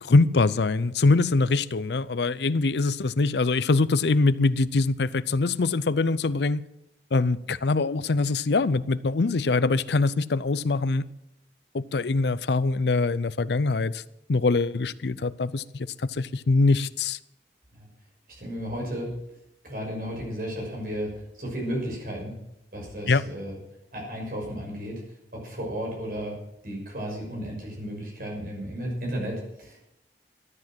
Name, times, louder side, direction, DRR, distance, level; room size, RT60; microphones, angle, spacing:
voice 1, 0.0-6.6 7.1-11.1 11.7-14.0 14.3-17.2 23.1-23.2, left 3 dB, 70° left, 0.5 m, -23 dB
voice 2, 18.4-19.1 19.6-21.1 21.4-22.3 22.7-23.6 23.9-25.0 25.3-26.3 26.6-29.8, equal, 50° right, 6.2 m, -33 dB
13.5 x 9.9 x 7.6 m
head